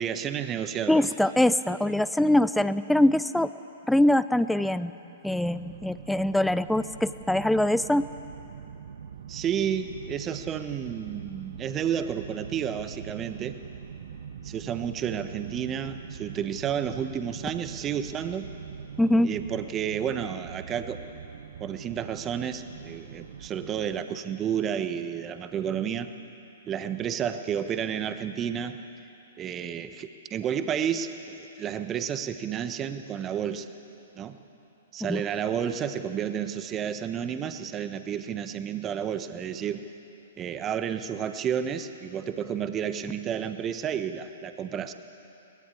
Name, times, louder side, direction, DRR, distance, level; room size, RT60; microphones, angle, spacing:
voice 1, 0.0-1.0 9.3-13.6 14.4-18.5 19.2-21.0 21.6-26.1 26.7-28.8 29.4-33.7 34.2-34.4 34.9-39.8 40.4-44.9, right 8 dB, 25° right, 9 dB, 1.3 m, -31 dB
voice 2, 0.9-3.5 3.9-4.9 5.2-8.0 19.0-19.3 35.1-35.2, left 1 dB, 5° left, 15 dB, 0.5 m, -23 dB
sound 1, 5.3-24.0, right 7 dB, 60° right, 1.1 m, -43 dB
23.0 x 19.5 x 8.5 m, 2.8 s
figure-of-eight pair, 115°, 0 cm